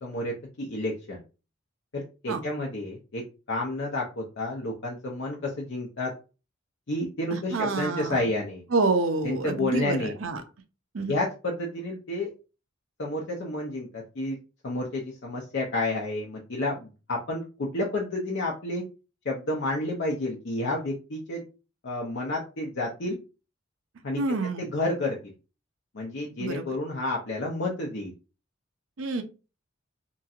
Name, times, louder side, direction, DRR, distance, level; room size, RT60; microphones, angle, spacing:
voice 1, 0.0-1.2 1.9-3.2 3.5-6.1 6.9-8.6 9.2-10.1 11.1-12.3 13.0-14.4 14.6-18.8 19.2-21.4 21.8-23.2 24.0-24.2 24.6-25.3 25.9-28.1, left 2 dB, 60° left, -2 dB, 0.6 m, -30 dB
voice 2, 7.3-8.2 8.7-10.4 10.9-11.1 24.2-24.7 26.4-26.6 29.0-29.2, right 3 dB, 85° right, 7 dB, 0.6 m, -27 dB
2.9 x 2.6 x 2.4 m, 0.32 s
head